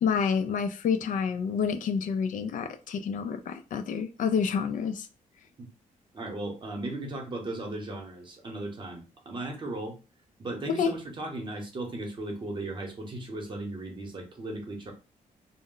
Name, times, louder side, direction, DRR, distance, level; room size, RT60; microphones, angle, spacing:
voice 1, 0.0-5.1 10.8-10.9, left 6 dB, 60° left, 0.4 m, -28 dB
voice 2, 6.1-10.0 10.4-14.9, right 2 dB, 35° right, 0.8 m, -36 dB
2.2 x 2.0 x 3.7 m
cardioid pair, 130°, 15 cm